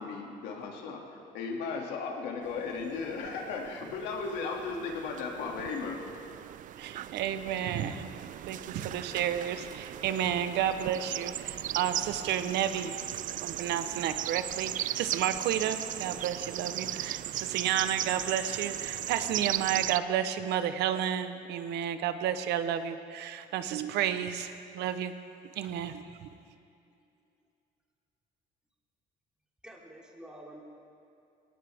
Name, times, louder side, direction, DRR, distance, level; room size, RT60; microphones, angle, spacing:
voice 1, 0.0-6.0, left 4 dB, 90° left, 0 dB, 2.5 m, -36 dB
sound 1, 2.5-20.0, right 12 dB, 50° right, 0.4 m, -37 dB
voice 2, 6.8-8.1 8.5-12.9 13.4-25.1 25.6-26.3, right 10 dB, 80° right, 10 dB, 1.0 m, -31 dB
voice 3, 26.6-26.9 29.6-30.6, right 1 dB, 5° right, -3 dB, 3.1 m, -50 dB
21.5 x 18.5 x 3.6 m, 2.5 s
cardioid pair, 110°, 17 cm